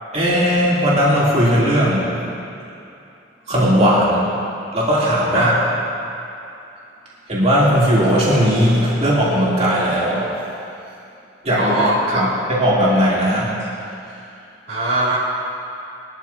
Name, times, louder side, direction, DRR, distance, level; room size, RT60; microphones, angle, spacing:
voice 1, 0.1-2.1 3.5-4.3 4.7-5.5 7.3-10.4 11.4-11.7 12.1-13.5, equal, 40° right, -8 dB, 3.5 m, -17 dB
voice 2, 11.6-12.2 14.7-15.2, right 2 dB, 60° right, -9 dB, 3.0 m, -20 dB
21.5 x 12.5 x 3.0 m, 2.6 s
head